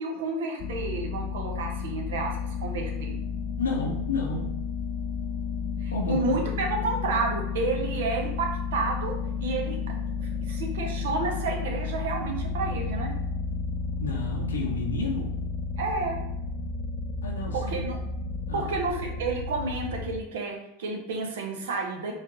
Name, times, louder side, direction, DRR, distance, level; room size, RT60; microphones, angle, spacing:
voice 1, 0.0-2.3 2.6-3.2 5.8-9.8 10.2-13.1 15.8-16.2 17.5-18.0 18.5-22.1, right 3 dB, 70° right, 1 dB, 0.8 m, -30 dB
sound 1, 0.6-20.2, left 5 dB, 55° left, 0.3 m, -32 dB
voice 2, 3.6-4.6 5.9-6.4 14.0-15.3 17.2-17.9 18.5-18.7, left 2 dB, 85° left, 0 dB, 0.7 m, -31 dB
4.3 x 3.3 x 2.6 m, 0.82 s
hypercardioid pair, 95°, 0 cm